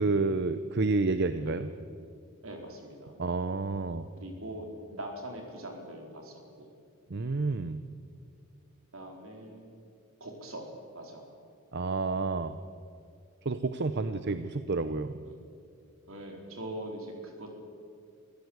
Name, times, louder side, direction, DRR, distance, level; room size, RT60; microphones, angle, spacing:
voice 1, 0.0-1.7 3.2-4.1 7.1-7.8 11.7-12.6 13.5-15.1, right 3 dB, 50° right, 11 dB, 0.7 m, -29 dB
voice 2, 2.4-3.1 4.2-6.7 8.9-9.7 10.2-11.2 15.2-15.4 16.1-17.5, right 1 dB, 70° right, 2 dB, 4.4 m, -42 dB
25.5 x 15.5 x 8.1 m, 2.4 s
head